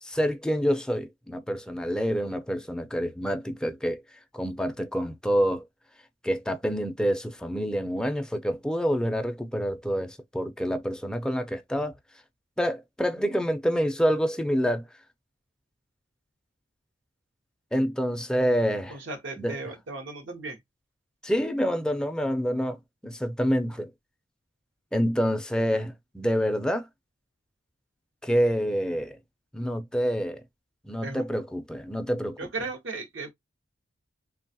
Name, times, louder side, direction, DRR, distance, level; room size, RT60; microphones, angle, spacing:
voice 1, 0.0-4.0 4.3-5.6 6.2-11.9 12.6-14.8 17.7-18.9 19.4-19.5 21.2-22.8 23.0-23.9 24.9-26.9 28.2-29.2 29.5-30.4 30.8-32.4, equal, 5° left, 0.4 m, -27 dB
voice 2, 18.9-20.6 31.0-31.2 32.4-33.3, right 3 dB, 70° right, 0.8 m, -36 dB
3.1 x 2.3 x 2.6 m
head